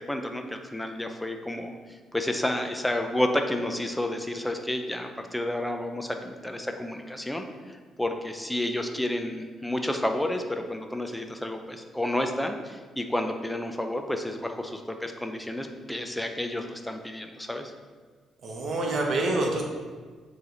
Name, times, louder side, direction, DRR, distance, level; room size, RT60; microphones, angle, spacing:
voice 1, 0.1-17.7, left 1 dB, 5° left, 5 dB, 0.6 m, -31 dB
voice 2, 18.4-19.6, right 2 dB, 55° right, 1 dB, 1.1 m, -26 dB
7.3 x 3.3 x 4.0 m, 1.5 s
cardioid pair, 90°, 0 cm